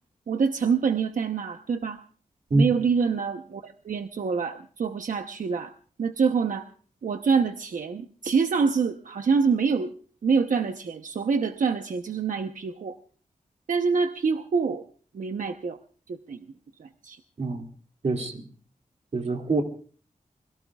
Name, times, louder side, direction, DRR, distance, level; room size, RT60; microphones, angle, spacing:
voice 1, 0.3-2.0 2.5-5.7 6.0-6.7 7.0-9.9 10.2-13.0 13.7-14.8 15.1-15.8 16.1-16.4 16.8-17.2, right 5 dB, 75° right, 6 dB, 0.9 m, -26 dB
voice 2, 18.0-18.5 19.1-19.6, right 2 dB, 55° right, 3 dB, 2.5 m, -24 dB
26.0 x 22.0 x 2.4 m, 0.43 s
wide cardioid pair, 120°, 14 cm